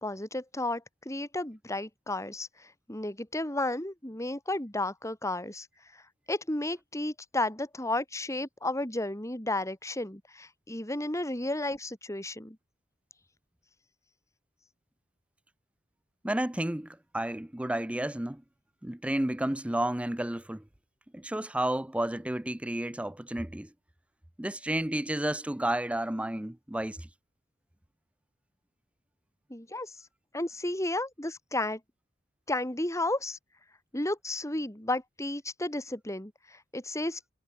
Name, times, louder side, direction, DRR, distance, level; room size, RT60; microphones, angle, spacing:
voice 1, 0.0-5.7 5.9-6.0 6.3-12.6 29.5-30.0 30.3-31.8 32.5-33.4 33.9-37.3, left 2 dB, 15° left, 3.7 m, -33 dB
voice 2, 16.2-18.4 18.8-20.6 21.1-23.7 24.4-27.1, right 1 dB, 5° right, 0.5 m, -31 dB
head